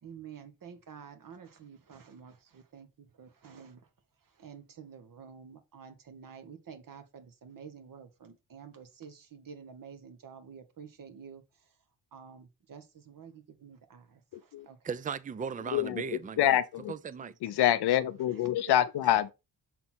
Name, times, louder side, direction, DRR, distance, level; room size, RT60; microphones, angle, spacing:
voice 1, 0.0-3.9 4.2-11.8 12.1-14.9 17.2-17.3 18.3-18.4 18.7-19.1, right 6 dB, 55° right, 1.2 m, -50 dB
voice 2, 14.3-14.7 15.7-16.9 17.4-19.3, left 12 dB, 85° left, 0.7 m, -27 dB
voice 3, 14.8-16.6 16.9-17.3, right 6 dB, 20° right, 0.4 m, -37 dB
5.9 x 3.8 x 4.3 m
cardioid pair, 70°, 38 cm